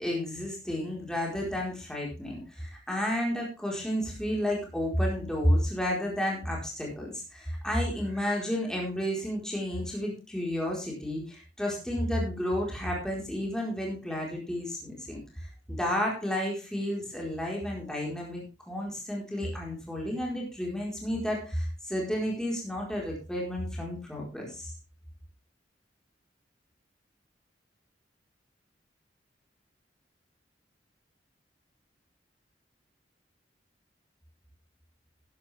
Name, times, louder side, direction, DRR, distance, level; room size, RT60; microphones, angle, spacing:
voice 1, 0.0-24.7, equal, 5° left, -2 dB, 4.4 m, -31 dB
13.0 x 11.0 x 3.5 m, 0.32 s
head